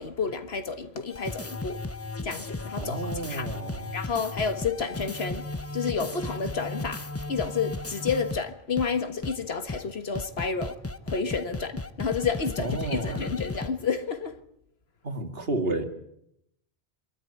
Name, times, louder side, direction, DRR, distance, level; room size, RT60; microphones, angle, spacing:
voice 1, 0.0-1.8 2.2-3.5 3.9-5.5 5.7-7.0 7.3-10.8 11.1-14.4, left 5 dB, 65° left, 1.7 m, -30 dB
sound 1, 1.1-8.4 8.8-8.9 9.2-9.4 9.7-9.8 10.1-13.7, left 2 dB, 15° left, 0.7 m, -35 dB
voice 2, 2.8-3.9 12.6-13.2 15.0-15.8, right 2 dB, 60° right, 2.4 m, -31 dB
25.0 x 13.0 x 9.7 m
omnidirectional pair, 1.1 m